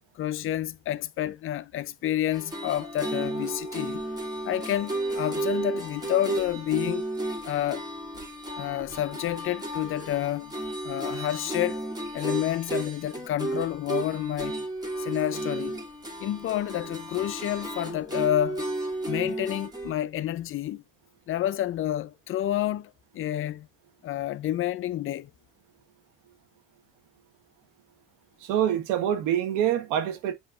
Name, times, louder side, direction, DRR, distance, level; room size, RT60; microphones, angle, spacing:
voice 1, 0.2-4.0 4.4-7.0 7.4-7.8 8.6-10.5 10.8-14.6 15.0-15.8 16.2-18.7 19.0-20.8 21.3-23.7 24.0-25.3, left 12 dB, 45° left, 0.4 m, -29 dB
sound 1, 2.3-19.9, right 1 dB, 15° right, 1.8 m, -33 dB
voice 2, 28.4-30.3, right 10 dB, 80° right, 1.2 m, -25 dB
7.3 x 2.8 x 2.4 m
supercardioid pair, 100°, 31 cm